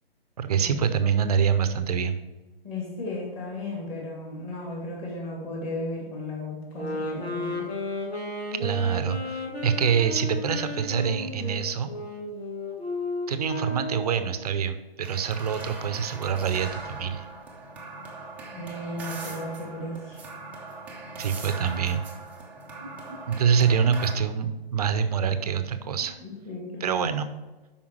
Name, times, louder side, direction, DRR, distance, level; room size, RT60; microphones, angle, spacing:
voice 1, 0.4-2.2 8.6-11.9 13.3-17.2 21.2-22.0 23.3-26.2 26.8-27.3, right 7 dB, 40° right, 10 dB, 0.7 m, -25 dB
voice 2, 2.6-7.7 18.5-20.2 22.8-22.9 25.8-27.0, left 1 dB, 20° left, -2 dB, 2.5 m, -35 dB
sound 1, 6.7-14.3, left 2 dB, 90° left, 1.9 m, -33 dB
sound 2, 15.0-24.1, right 3 dB, 5° right, 0.6 m, -40 dB
8.4 x 5.7 x 4.7 m, 1.2 s
figure-of-eight pair, 130°, 30 cm